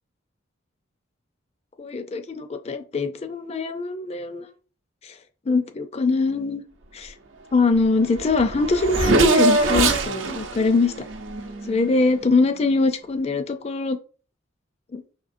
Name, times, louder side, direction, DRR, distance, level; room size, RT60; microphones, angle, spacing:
voice 1, 1.8-4.5 5.0-5.1 5.5-6.6 6.9-7.1 7.5-10.9 11.7-14.0 14.9-15.0, left 3 dB, 35° left, 8 dB, 0.4 m, -23 dB
Race car auto racing / Accelerating revving vroom, 7.8-7.9 8.1-12.1, right 2 dB, 85° right, 0.7 m, -22 dB
5.4 x 3.6 x 2.6 m, 0.38 s
head